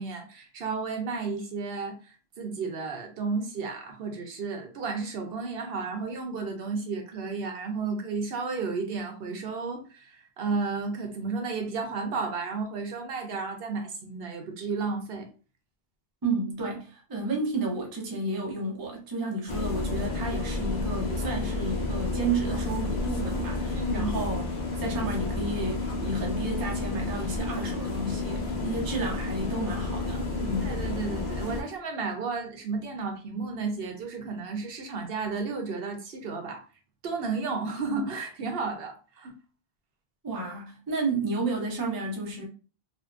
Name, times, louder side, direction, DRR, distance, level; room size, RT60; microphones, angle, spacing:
voice 1, 0.0-15.3 23.7-24.1 30.6-36.6 37.0-39.3, right 4 dB, 70° right, 0.8 m, -33 dB
voice 2, 16.2-24.5 24.8-30.8 40.2-42.4, right 2 dB, 30° right, 0.5 m, -31 dB
sound 1, 19.5-31.6, left 3 dB, 55° left, 0.6 m, -31 dB
3.4 x 2.2 x 2.4 m
omnidirectional pair, 1.1 m